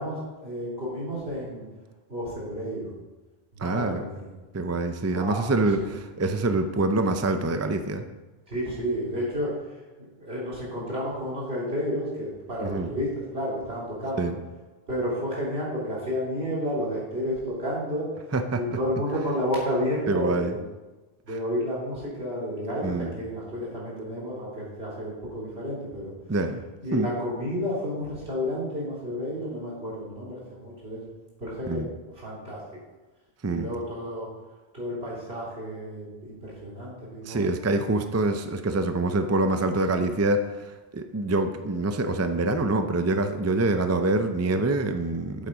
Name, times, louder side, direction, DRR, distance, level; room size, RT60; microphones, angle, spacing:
voice 1, 0.0-1.6 2.1-2.9 3.5-4.3 5.1-5.9 8.5-14.3 14.9-18.1 18.5-20.6 21.2-26.1 26.8-31.0 31.4-31.8 32.1-32.6 33.5-34.3 34.7-37.4, equal, 75° right, -6 dB, 3.5 m, -31 dB
voice 2, 3.6-4.0 4.5-8.0 12.6-12.9 14.2-14.3 18.3-18.6 20.1-20.5 22.8-23.1 26.3-26.6 26.9-27.1 31.7-31.9 33.4-33.7 37.2-45.5, right 2 dB, 20° right, 7 dB, 0.4 m, -25 dB
8.3 x 7.5 x 5.1 m, 1.2 s
omnidirectional pair, 1.0 m